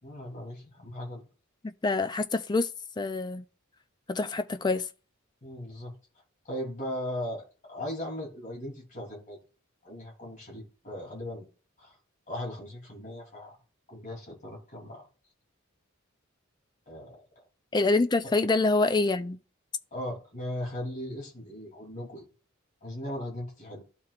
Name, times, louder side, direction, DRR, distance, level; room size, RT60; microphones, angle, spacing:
voice 1, 0.0-1.2 5.4-5.9 6.4-9.4 9.8-11.4 11.8-12.0 12.3-13.6 13.9-15.0 16.9-17.2 19.9-22.3 22.8-23.8, left 1 dB, 35° left, 3.0 m, -38 dB
voice 2, 1.6-2.7 3.0-3.4 4.1-4.9 17.7-19.4, left 3 dB, 20° left, 0.4 m, -26 dB
12.5 x 4.4 x 2.4 m
head